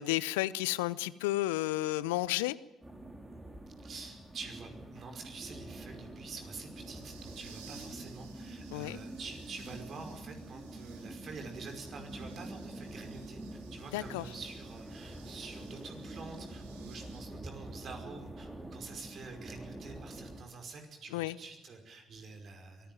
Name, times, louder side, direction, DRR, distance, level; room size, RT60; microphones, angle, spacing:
voice 1, 0.0-2.6 8.7-9.0 13.9-14.3 21.1-21.4, left 17 dB, 75° left, 19 dB, 0.6 m, -32 dB
sound 1, 2.8-20.4, right 1 dB, 15° right, 4.1 m, -46 dB
voice 2, 3.8-22.9, right 4 dB, 50° right, 4 dB, 5.3 m, -47 dB
sound 2, 4.3-17.2, right 7 dB, 80° right, 2.9 m, -59 dB
23.5 x 16.0 x 9.2 m, 1.1 s
hypercardioid pair, 50°, 0 cm